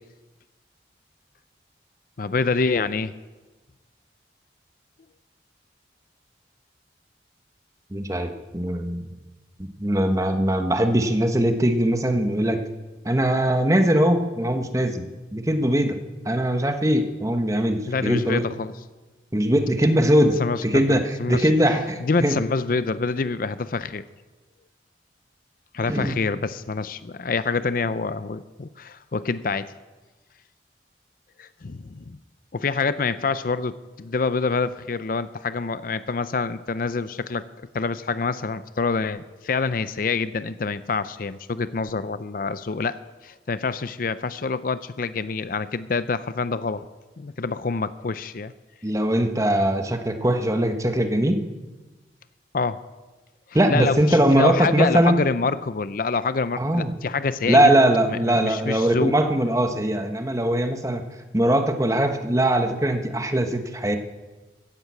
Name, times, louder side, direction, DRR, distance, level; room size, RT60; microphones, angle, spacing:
voice 1, 2.2-3.1 17.9-18.7 20.4-21.5 22.0-24.0 25.7-29.7 31.4-32.2 32.5-37.4 37.7-46.9 47.2-48.5 52.5-52.8 53.5-57.8 58.1-59.1, left 4 dB, 50° left, 14 dB, 0.5 m, -26 dB
voice 2, 7.9-9.1 9.6-12.6 13.0-15.1 15.3-16.0 16.2-18.4 19.3-22.4 25.9-26.1 48.8-51.4 53.5-55.2 56.6-56.9 57.5-61.0 61.3-64.0, right 1 dB, 20° right, 6 dB, 1.2 m, -21 dB
15.0 x 10.5 x 8.3 m, 1.2 s
head